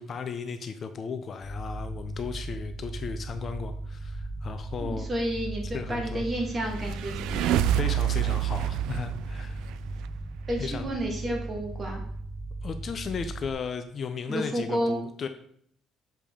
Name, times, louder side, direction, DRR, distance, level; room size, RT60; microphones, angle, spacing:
voice 1, 0.0-5.1 5.7-6.2 7.8-9.6 10.6-10.9 12.6-15.3, left 6 dB, 35° left, 8 dB, 0.4 m, -35 dB
sound 1, 1.4-13.5, right 2 dB, 5° right, 0.9 m, -37 dB
voice 2, 4.8-7.6 10.5-12.0 14.3-15.0, right 1 dB, 20° right, 1 dB, 1.6 m, -31 dB
sound 2, 6.5-10.1, right 12 dB, 80° right, 0.3 m, -28 dB
6.8 x 5.0 x 3.7 m, 0.66 s
cardioid pair, 140°, 0 cm